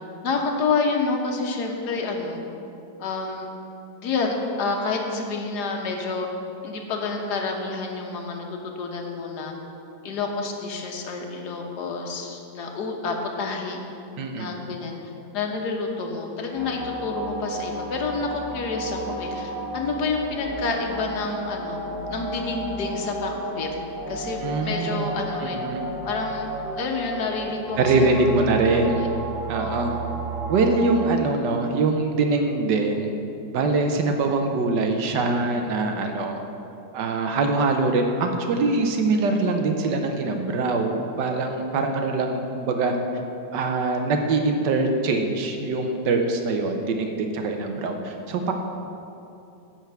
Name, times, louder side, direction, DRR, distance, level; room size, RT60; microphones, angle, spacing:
voice 1, 0.2-2.4 3.0-3.5 4.0-6.3 6.6-9.5 10.0-13.8 14.4-14.9 15.3-21.8 22.1-23.7 24.1-25.6 26.0-26.5 26.8-28.1 28.6-29.1 29.6-30.0, left 4 dB, 65° left, 1 dB, 1.6 m, -29 dB
voice 2, 14.2-14.5 24.4-25.1 25.4-25.8 27.8-29.0 29.5-29.9 30.5-33.1 33.5-36.4 36.9-42.9 43.5-48.5, right 3 dB, 75° right, 4 dB, 1.3 m, -23 dB
sound 1, 16.5-31.1, right 2 dB, 10° left, 2.0 m, -32 dB
10.5 x 4.6 x 8.0 m, 2.7 s
omnidirectional pair, 1.9 m